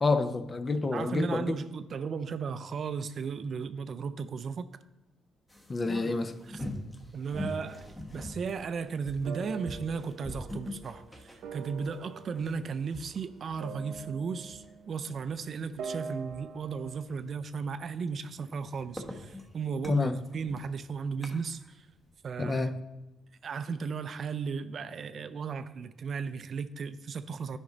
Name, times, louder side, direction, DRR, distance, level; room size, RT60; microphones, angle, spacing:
voice 1, 0.0-1.5 5.7-6.3 19.9-20.2 22.4-22.7, left 3 dB, 30° left, 0.6 m, -28 dB
voice 2, 0.9-4.7 6.5-6.6 7.1-21.9 22.2-22.7 23.4-27.6, right 5 dB, 55° right, 0.4 m, -35 dB
sound 1, 5.5-14.8 15.2-15.3 15.7-15.8 16.3-16.4 16.8-17.2 17.7-21.7 22.0-22.1, left 1 dB, 15° left, 1.1 m, -43 dB
sound 2, 7.3-8.1 9.2-15.3 15.8-17.1, right 5 dB, 80° right, 0.7 m, -44 dB
9.8 x 5.1 x 3.9 m
cardioid pair, 90°, 0 cm